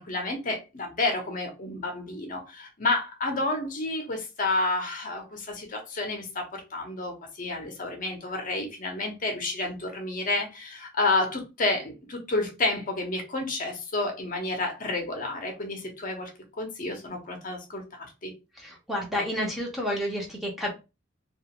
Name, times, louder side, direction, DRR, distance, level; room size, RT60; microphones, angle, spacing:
voice 1, 0.0-16.3 16.6-18.3, left 2 dB, 45° left, 0.7 m, -30 dB
voice 2, 18.6-20.7, equal, ahead, 0.7 m, -30 dB
2.4 x 2.4 x 2.8 m
head